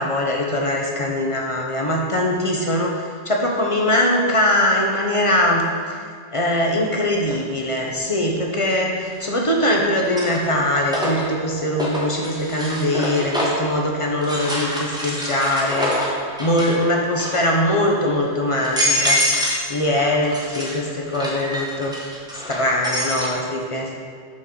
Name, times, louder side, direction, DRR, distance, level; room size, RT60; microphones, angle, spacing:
voice 1, 0.0-6.0 6.3-15.9 16.4-19.2 19.7-21.9 22.3-23.9, left 1 dB, 35° left, -1 dB, 0.6 m, -21 dB
sound 1, 7.3-7.4 9.1-9.5 9.9-13.7 14.2-16.8 17.1-17.6 18.2-18.3 18.6-19.7 20.0-23.3, equal, 5° right, 0.8 m, -26 dB
6.1 x 6.0 x 3.8 m, 2.1 s
omnidirectional pair, 1.3 m